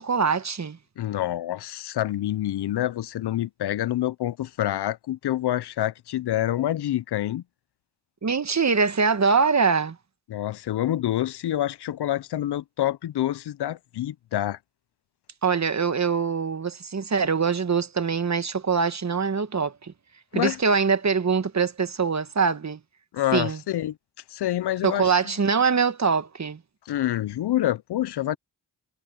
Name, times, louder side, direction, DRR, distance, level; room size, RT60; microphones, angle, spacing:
voice 1, 0.0-0.8 8.2-10.0 15.4-19.9 20.3-22.8 23.3-23.6 24.8-26.6, right 5 dB, 40° right, 1.3 m, -23 dB
voice 2, 1.0-7.4 10.3-14.6 20.3-20.6 23.1-24.0 24.3-25.1 26.9-28.4, left 13 dB, 70° left, 0.6 m, -27 dB
cardioid pair, 50°, 41 cm